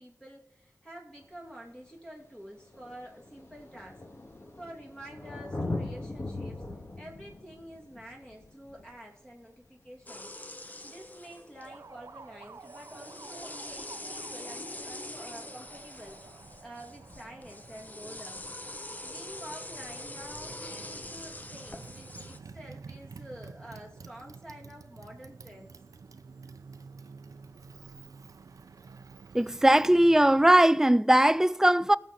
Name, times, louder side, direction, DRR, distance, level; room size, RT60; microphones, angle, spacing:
voice 1, 0.0-4.0 4.6-6.7 7.0-10.3 10.8-16.2 16.6-18.4 19.0-25.7, equal, 15° left, 2.5 m, -48 dB
Thunder, 1.2-1.3 2.2-2.3 2.6-9.9 11.6-11.7, left 2 dB, 45° left, 2.1 m, -40 dB
sound 1, 10.1-11.8 12.6-22.4, left 1 dB, 30° left, 1.0 m, -43 dB
Motorcycle, 11.6-30.5, right 4 dB, 80° right, 0.6 m, -50 dB
voice 2, 29.3-32.0, right 1 dB, 10° right, 0.4 m, -20 dB
17.5 x 6.8 x 4.2 m
cardioid pair, 50°, 6 cm